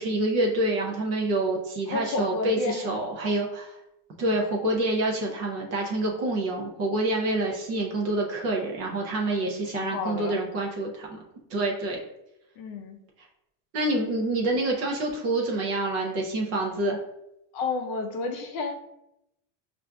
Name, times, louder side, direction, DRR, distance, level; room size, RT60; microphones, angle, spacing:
voice 1, 0.0-3.8 4.2-11.2 11.5-12.0 13.7-17.0, right 2 dB, 35° right, -1 dB, 0.4 m, -27 dB
voice 2, 1.9-3.1 9.4-10.4 12.6-13.0 17.5-18.8, left 3 dB, 55° left, 5 dB, 0.5 m, -31 dB
5.3 x 2.5 x 2.2 m, 0.85 s
cardioid pair, 165°, 48 cm